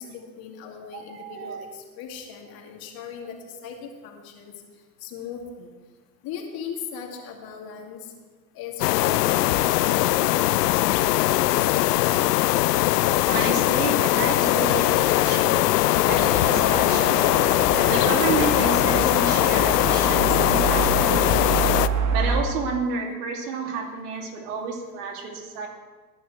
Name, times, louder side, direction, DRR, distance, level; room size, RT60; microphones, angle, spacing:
voice 1, 0.0-4.5 5.0-5.7 6.2-8.1 8.5-11.7, left 7 dB, 45° left, 1 dB, 2.6 m, -38 dB
voice 2, 0.9-1.7 3.5-3.6 13.3-17.2 17.8-21.7 22.1-25.7, right 5 dB, 65° right, 2 dB, 2.7 m, -31 dB
sound 1, 8.8-21.9, left 16 dB, 70° left, 0.6 m, -21 dB
sound 2, 16.0-22.4, right 6 dB, 35° right, 1.5 m, -28 dB
20.5 x 10.5 x 3.3 m, 1.3 s
hypercardioid pair, 90°, 50 cm